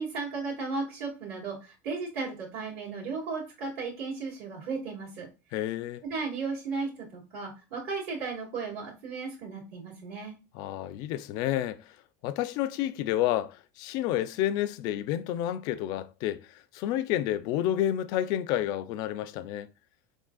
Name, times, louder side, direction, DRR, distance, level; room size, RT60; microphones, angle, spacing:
voice 1, 0.0-5.3 6.0-10.3, right 4 dB, 70° right, 2.0 m, -35 dB
voice 2, 5.5-6.0 10.5-12.0 12.2-19.7, left 12 dB, 55° left, 0.4 m, -30 dB
4.8 x 3.7 x 2.3 m
cardioid pair, 155°, 8 cm